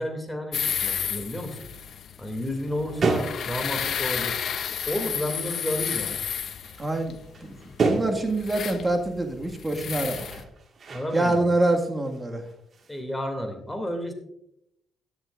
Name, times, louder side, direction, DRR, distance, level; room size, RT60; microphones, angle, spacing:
voice 1, 0.0-1.6 2.2-4.4 4.9-6.2 10.9-11.4 12.9-14.1, equal, 5° left, 4 dB, 2.6 m, -31 dB
sound 1, 0.5-10.4, left 8 dB, 60° left, 0.7 m, -32 dB
sound 2, 1.7-1.8 2.2-4.6 4.9-8.5 9.4-9.6 9.9-11.8 12.0-13.0, right 4 dB, 50° right, 1.8 m, -32 dB
voice 2, 6.8-7.6 7.8-10.4 11.1-12.5, right 2 dB, 20° right, 2 dB, 1.8 m, -26 dB
16.5 x 10.5 x 2.5 m, 0.78 s
cardioid pair, 90°, 0 cm